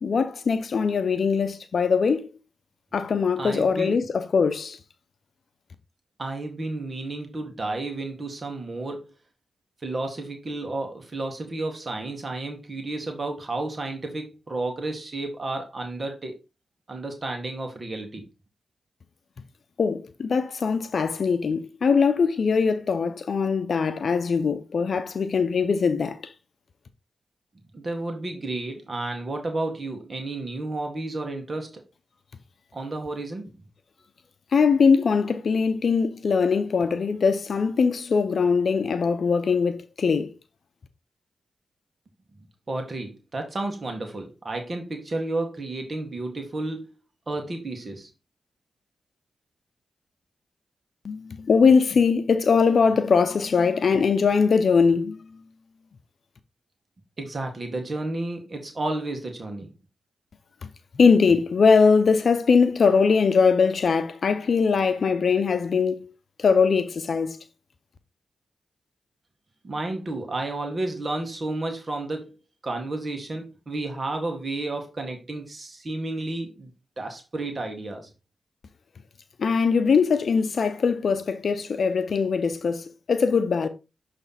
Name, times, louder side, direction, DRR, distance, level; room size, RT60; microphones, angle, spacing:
voice 1, 0.0-2.4 2.9-4.8 19.8-26.3 34.5-40.3 51.0-55.4 60.9-66.1 66.4-67.4 79.4-83.7, left 5 dB, 65° left, 0.6 m, -21 dB
voice 2, 3.4-3.9 6.2-9.1 9.8-16.4 16.9-18.2 27.7-31.8 32.7-33.5 42.7-46.9 47.3-48.1 57.2-59.7 69.6-72.4 72.6-76.7 77.0-78.1, right 2 dB, 45° right, 1.7 m, -31 dB
7.1 x 3.3 x 4.2 m
supercardioid pair, 40°, 0 cm